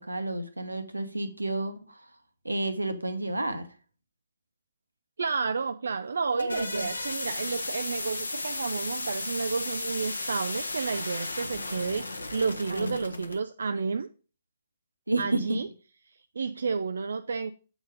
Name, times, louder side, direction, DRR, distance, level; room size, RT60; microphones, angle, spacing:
voice 1, 0.0-2.0 2.4-3.7 6.4-6.9 12.7-13.0 13.7-13.8 15.1-15.6, right 2 dB, 90° right, 0.9 m, -30 dB
voice 2, 5.2-12.1 12.3-14.1 15.2-15.7 16.4-17.5, right 5 dB, 70° right, 0.4 m, -31 dB
sound 1, 6.1-13.4, left 2 dB, 85° left, 0.9 m, -35 dB
8.0 x 4.0 x 4.9 m
figure-of-eight pair, 130°, 0 cm